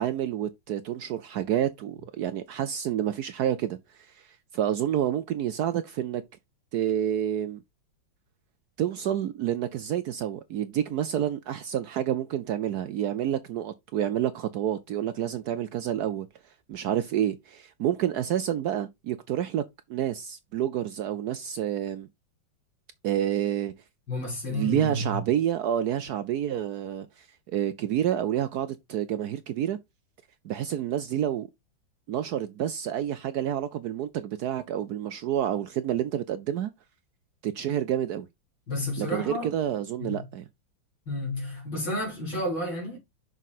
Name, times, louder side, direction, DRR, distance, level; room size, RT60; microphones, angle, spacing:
voice 1, 0.0-4.3 4.5-6.2 6.7-7.6 8.8-16.3 16.7-19.6 19.9-22.1 23.0-23.7 24.5-29.8 30.4-31.5 32.1-36.7 37.4-38.3 39.0-40.4, right 10 dB, 75° right, 0.9 m, -29 dB
voice 2, 24.1-25.2 38.7-39.5 40.0-40.3 41.1-43.0, left 1 dB, 80° left, 4.2 m, -31 dB
6.2 x 5.4 x 4.0 m
omnidirectional pair, 2.2 m